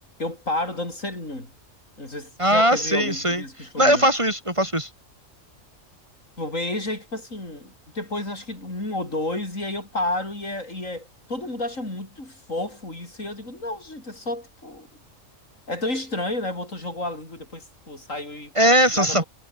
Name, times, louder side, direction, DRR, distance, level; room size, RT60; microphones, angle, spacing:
voice 1, 0.2-1.5 2.0-4.1 6.4-14.9 15.7-19.2, left 2 dB, 80° left, 7.5 m, -31 dB
voice 2, 2.4-3.4 3.8-4.9 18.6-19.2, equal, 25° right, 3.1 m, -19 dB
omnidirectional pair, 1.3 m